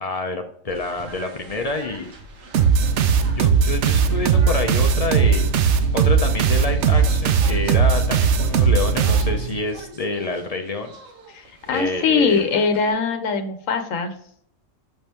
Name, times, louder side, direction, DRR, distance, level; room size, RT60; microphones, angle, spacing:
voice 1, 0.0-2.1 3.4-11.0 11.7-12.4, left 2 dB, 40° left, 5 dB, 0.6 m, -28 dB
sound 1, 0.7-12.9, right 2 dB, 85° right, 1.6 m, -41 dB
sound 2, 2.5-9.7, right 6 dB, 70° right, 0.9 m, -18 dB
voice 2, 11.3-14.1, left 5 dB, 85° left, 7 dB, 1.2 m, -22 dB
6.4 x 5.3 x 3.0 m, 0.63 s
omnidirectional pair, 1.3 m